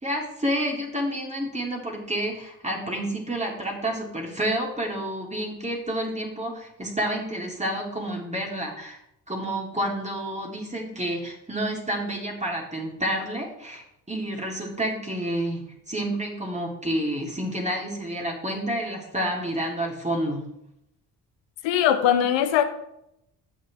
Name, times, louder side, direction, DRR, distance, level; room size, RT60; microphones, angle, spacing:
voice 1, 0.0-9.0 9.3-20.4, right 1 dB, 15° right, -1 dB, 3.7 m, -29 dB
voice 2, 21.6-22.6, left 10 dB, 65° left, 8 dB, 1.3 m, -20 dB
16.0 x 6.4 x 3.6 m, 0.78 s
hypercardioid pair, 45°, 48 cm